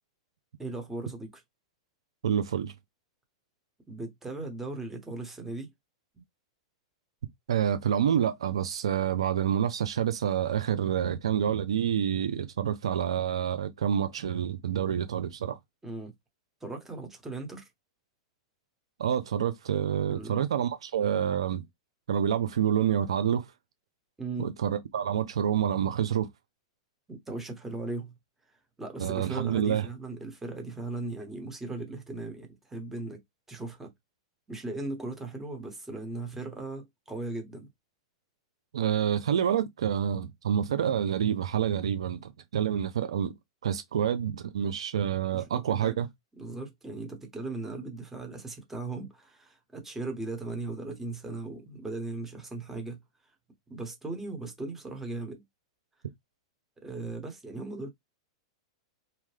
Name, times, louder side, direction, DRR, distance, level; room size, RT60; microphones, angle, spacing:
voice 1, 0.6-1.4 3.9-5.7 6.1-6.2 15.8-16.1 16.6-17.7 20.1-20.5 24.2-24.5 27.1-28.1 28.8-33.2 33.5-33.9 34.5-37.7 45.3-46.0 46.4-53.0 53.7-55.4 56.8-57.9, right 2 dB, 10° right, 1.0 m, -38 dB
voice 2, 2.2-2.7 7.5-15.6 19.0-21.6 22.1-23.4 24.4-26.3 29.0-29.9 38.7-43.3 43.6-46.1, right 9 dB, 85° right, 0.4 m, -28 dB
2.8 x 2.1 x 3.2 m
hypercardioid pair, 120°, 3 cm